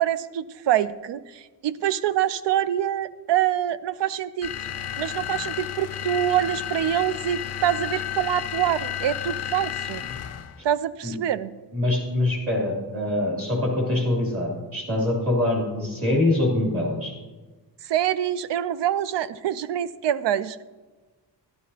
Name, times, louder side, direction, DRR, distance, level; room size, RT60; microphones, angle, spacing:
voice 1, 0.0-4.5 5.0-10.1 10.6-11.5 17.8-20.6, right 11 dB, 80° right, 16 dB, 0.5 m, -25 dB
sound 1, 4.4-10.6, left 10 dB, 40° left, 0.4 m, -32 dB
voice 2, 11.7-17.1, left 1 dB, 35° right, -3 dB, 2.8 m, -24 dB
12.5 x 11.5 x 2.8 m, 1.3 s
wide cardioid pair, 175°, 42 cm